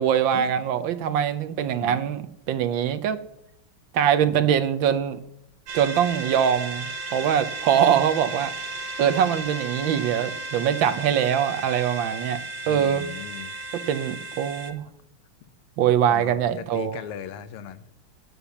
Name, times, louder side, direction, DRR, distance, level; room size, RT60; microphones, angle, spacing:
voice 1, 0.0-3.2 3.9-5.2 5.7-8.5 9.0-12.4 12.7-13.1 13.9-14.8 15.8-17.0, right 9 dB, 70° right, 10 dB, 1.4 m, -23 dB
sound 1, 5.7-14.7, right 2 dB, 90° right, 2.1 m, -34 dB
voice 2, 12.6-13.5 16.1-17.8, left 9 dB, 85° left, 13 dB, 1.7 m, -38 dB
9.9 x 9.7 x 7.0 m, 0.78 s
omnidirectional pair, 2.3 m